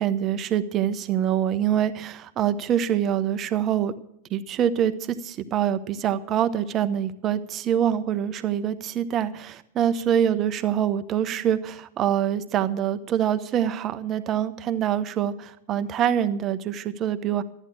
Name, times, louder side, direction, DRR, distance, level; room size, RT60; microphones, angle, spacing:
voice 1, 0.0-3.9 4.3-17.4, right 10 dB, 30° right, 11 dB, 1.0 m, -25 dB
14.0 x 10.0 x 7.4 m, 0.73 s
figure-of-eight pair, 90°, 0 cm